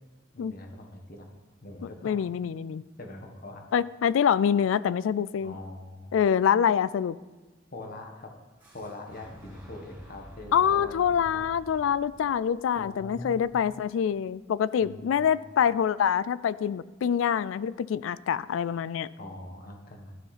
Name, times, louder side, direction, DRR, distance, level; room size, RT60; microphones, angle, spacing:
voice 1, 0.3-1.3 1.6-2.2 3.0-3.7 5.4-6.2 7.7-8.3 8.7-11.5 12.7-13.5 14.8-15.3 19.2-20.2, left 2 dB, 50° left, 3 dB, 1.3 m, -43 dB
voice 2, 2.0-2.8 3.7-5.5 6.1-7.2 10.5-19.1, left 8 dB, 85° left, 18 dB, 0.3 m, -25 dB
Boom, 8.6-14.5, equal, 10° right, 3.4 m, -50 dB
12.5 x 6.6 x 4.1 m, 1.2 s
head